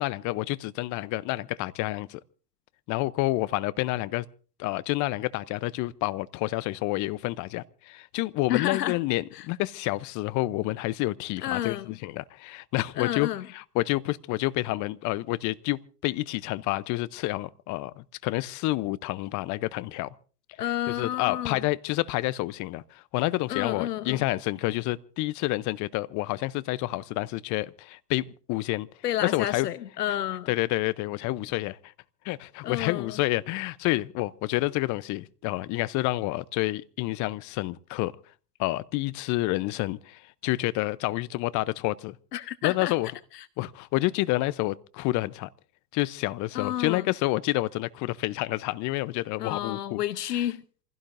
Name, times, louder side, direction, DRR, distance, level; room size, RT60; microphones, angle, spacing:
voice 1, 0.0-2.2 2.9-4.2 4.6-11.8 12.0-13.3 13.5-20.1 20.9-28.9 29.2-29.7 30.5-31.9 32.2-38.1 38.6-42.2 42.6-43.1 43.6-45.5 45.9-50.0 50.3-50.5, left 19 dB, 40° left, 0.8 m, -29 dB
voice 2, 8.5-9.0 9.3-9.5 11.4-12.0 13.0-13.5 20.6-21.7 23.5-24.2 29.0-30.5 32.6-33.2 42.3-42.9 43.3-43.5 46.5-47.1 49.4-50.6, left 12 dB, 80° left, 0.9 m, -30 dB
28.0 x 16.0 x 2.6 m
hypercardioid pair, 100°, 47 cm